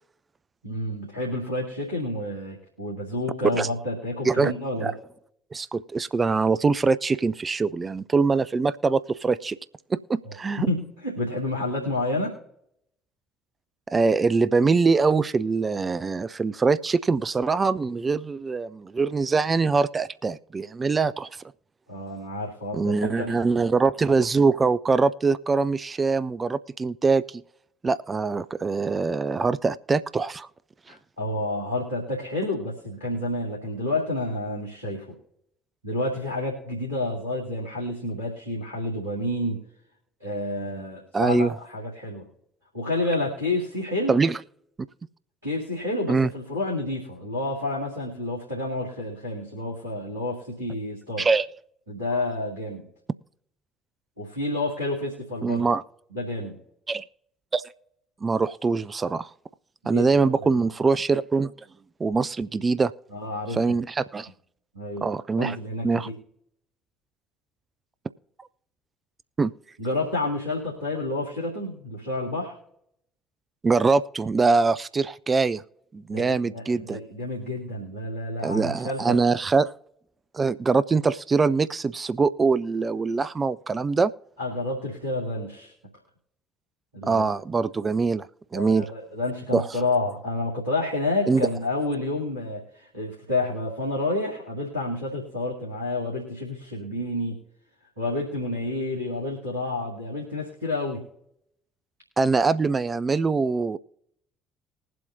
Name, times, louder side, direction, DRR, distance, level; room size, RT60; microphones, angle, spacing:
voice 1, 0.6-4.9 10.2-10.4 10.6-12.3 21.9-23.3 30.9-35.1 35.8-39.6 40.2-42.3 42.7-44.2 45.4-51.3 51.9-52.9 54.2-55.7 56.1-56.6 59.8-60.7 63.1-63.8 64.7-65.1 65.4-66.2 69.8-72.6 76.1-79.4 84.4-85.7 86.9-87.2 88.5-97.4 98.0-101.0, left 2 dB, 85° right, -5 dB, 2.2 m, -29 dB
voice 2, 5.5-9.6 9.9-10.7 13.9-21.3 22.7-27.4 27.8-30.5 41.1-41.5 44.1-44.4 46.1-46.3 51.2-51.5 55.4-55.8 56.9-57.0 57.5-57.6 58.2-59.3 59.9-61.5 62.0-62.9 63.5-64.3 65.0-65.6 65.8-66.1 69.4-69.5 73.6-75.6 75.9-77.0 78.4-79.7 80.3-84.1 87.0-88.3 88.5-88.9 89.5-89.6 91.3-91.4 102.2-103.8, right 4 dB, 25° right, 14 dB, 0.5 m, -23 dB
21.0 x 7.7 x 2.7 m, 0.75 s
figure-of-eight pair, 50°, 0 cm